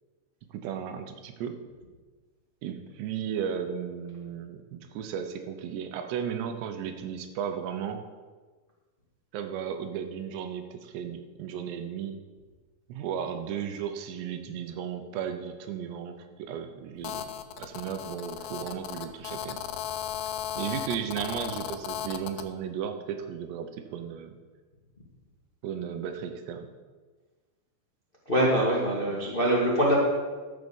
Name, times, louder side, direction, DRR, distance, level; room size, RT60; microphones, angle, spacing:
voice 1, 0.5-1.6 2.6-8.0 9.3-12.2 12.9-17.3 17.6-19.6 20.5-24.4 25.6-26.7 29.1-29.3, right 8 dB, 80° right, 7 dB, 2.9 m, -35 dB
Telephone, 17.0-22.5, left 10 dB, 90° left, 2.9 m, -36 dB
voice 2, 28.2-30.0, right 1 dB, 40° left, -4 dB, 0.7 m, -24 dB
12.5 x 6.6 x 7.0 m, 1.4 s
omnidirectional pair, 5.0 m